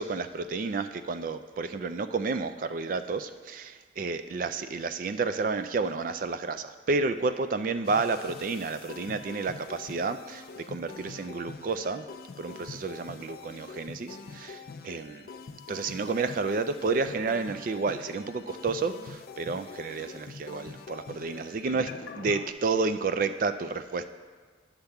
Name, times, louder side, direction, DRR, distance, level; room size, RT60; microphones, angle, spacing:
voice 1, 0.0-12.1 12.4-15.2 15.7-24.1, right 4 dB, 45° right, 10 dB, 0.3 m, -31 dB
sound 1, 7.9-22.5, left 4 dB, 55° left, 0.4 m, -44 dB
11.5 x 6.7 x 3.5 m, 1.5 s
head